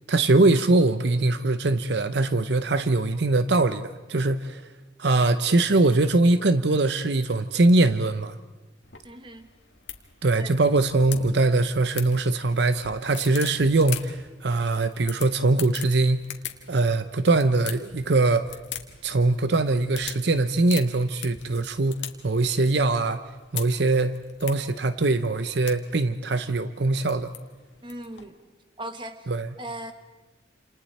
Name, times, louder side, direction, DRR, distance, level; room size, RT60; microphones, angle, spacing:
voice 1, 0.1-4.6 5.0-8.4 10.2-16.3 16.7-18.5 19.0-23.2 23.5-27.3 29.3-29.5, right 2 dB, 65° right, 11 dB, 0.7 m, -22 dB
sound 1, 8.8-28.2, left 10 dB, 70° left, 1.9 m, -42 dB
voice 2, 9.0-9.5 10.3-10.5 27.8-28.4 28.8-29.3 29.6-29.9, right 1 dB, 25° right, 8 dB, 1.4 m, -38 dB
29.0 x 28.0 x 4.3 m, 1.2 s
head